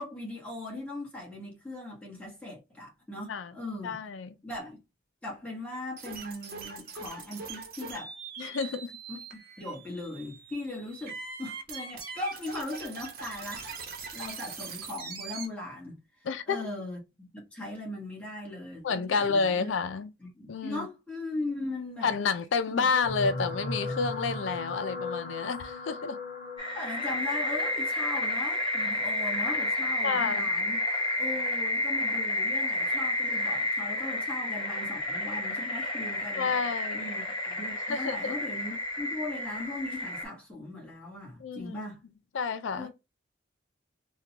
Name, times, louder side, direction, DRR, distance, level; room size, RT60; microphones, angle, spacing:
voice 1, 0.0-4.0 4.4-4.8 5.2-8.1 9.1-13.6 14.1-16.0 16.5-19.7 20.2-22.1 22.7-22.9 26.7-30.8 31.2-36.5 36.9-42.0 42.7-42.9, left 2 dB, 5° left, 1.4 m, -39 dB
voice 2, 3.8-4.3 8.4-8.9 16.2-16.7 18.8-20.1 20.5-20.9 22.0-26.2 30.0-30.5 36.4-37.1 37.9-38.4 41.4-41.9 42.3-42.9, left 5 dB, 85° left, 0.4 m, -30 dB
sound 1, 6.0-15.5, right 5 dB, 50° right, 0.9 m, -42 dB
sound 2, 22.9-31.4 32.1-32.4 32.7-32.8, left 2 dB, 45° left, 0.8 m, -39 dB
sound 3, 26.6-40.2, left 1 dB, 25° left, 1.2 m, -30 dB
3.6 x 2.3 x 2.9 m
head